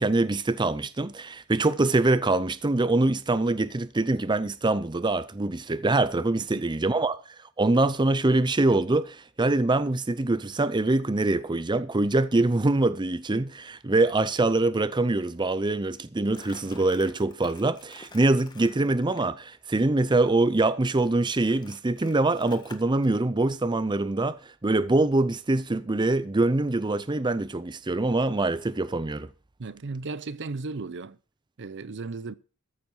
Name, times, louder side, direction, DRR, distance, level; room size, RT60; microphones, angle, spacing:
voice 1, 0.0-7.2 7.6-29.3, right 2 dB, 20° right, 0.6 m, -24 dB
Crumpling crinkling, 16.2-19.3 21.0-23.2, left 3 dB, 20° left, 1.6 m, -49 dB
voice 2, 29.6-31.2 31.6-32.3, right 3 dB, 55° right, 0.7 m, -35 dB
14.0 x 7.6 x 6.1 m
head